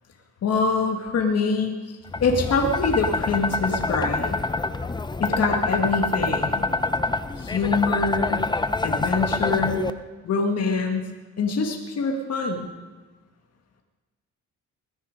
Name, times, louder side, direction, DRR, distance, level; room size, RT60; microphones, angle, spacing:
voice 1, 0.4-4.3 5.2-6.7 7.4-8.4 8.8-9.9 10.2-11.0 11.4-12.7, left 4 dB, 55° left, 2 dB, 1.8 m, -24 dB
sound 1, 2.1-9.9, left 2 dB, 15° left, 0.6 m, -26 dB
20.0 x 10.0 x 5.2 m, 1.3 s
cardioid pair, 90°, 30 cm